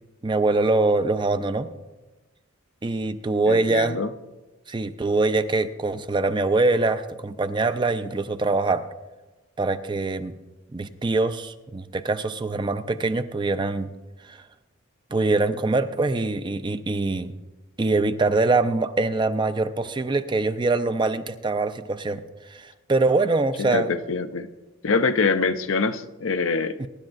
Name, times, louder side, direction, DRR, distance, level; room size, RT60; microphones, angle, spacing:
voice 1, 0.2-1.7 2.8-4.0 4.7-8.9 9.6-10.3 10.7-13.9 14.3-14.4 15.1-17.3 17.8-22.2 22.5-23.9 26.8-26.9, right 3 dB, 25° right, 11 dB, 0.4 m, -23 dB
voice 2, 3.5-4.1 23.6-24.5 24.8-26.9, left 4 dB, 70° left, 9 dB, 0.6 m, -24 dB
23.5 x 10.5 x 2.6 m, 1.1 s
head